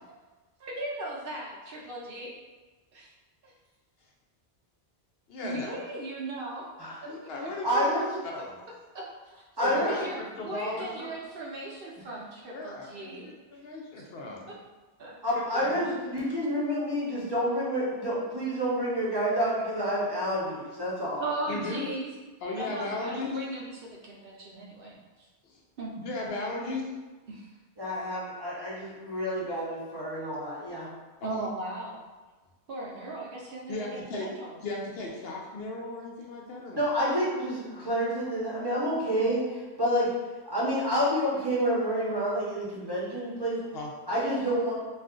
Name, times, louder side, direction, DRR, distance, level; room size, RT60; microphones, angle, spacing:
voice 1, 0.6-2.3 2.9-3.1 3.4-3.5 5.4-6.7 7.0-7.5 8.9-9.1 9.6-13.6 14.0-14.1 14.5-14.6 15.0-15.2 21.2-22.1 22.6-25.3 25.8-25.9 27.3-27.5 31.2-32.0 32.7-34.6, right 2 dB, 65° right, -3 dB, 0.7 m, -37 dB
voice 2, 5.3-5.7 7.1-8.0 8.2-8.6 9.6-11.1 12.5-14.5 15.3-15.9 21.5-21.9 22.4-23.4 25.4-25.6 26.0-26.8 31.2-31.5 33.7-34.3 34.6-36.8 43.7-43.9, left 2 dB, 65° left, -1 dB, 0.8 m, -36 dB
voice 3, 7.6-8.1 9.6-9.9 15.2-21.2 27.8-30.9 36.7-40.1 40.5-43.6 44.1-44.7, equal, 25° right, -7 dB, 0.7 m, -28 dB
2.4 x 2.4 x 3.6 m, 1.2 s
omnidirectional pair, 1.1 m